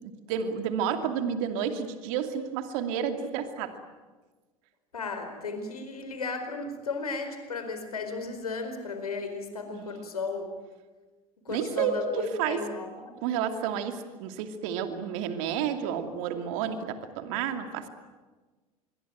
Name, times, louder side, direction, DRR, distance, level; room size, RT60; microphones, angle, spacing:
voice 1, 0.0-3.8 9.7-9.9 11.5-12.7 13.2-17.9, right 8 dB, 60° right, 8 dB, 2.7 m, -31 dB
voice 2, 4.9-10.5 11.4-13.1, left 4 dB, 85° left, 6 dB, 4.6 m, -35 dB
27.0 x 22.5 x 9.3 m, 1.3 s
hypercardioid pair, 75°, 19 cm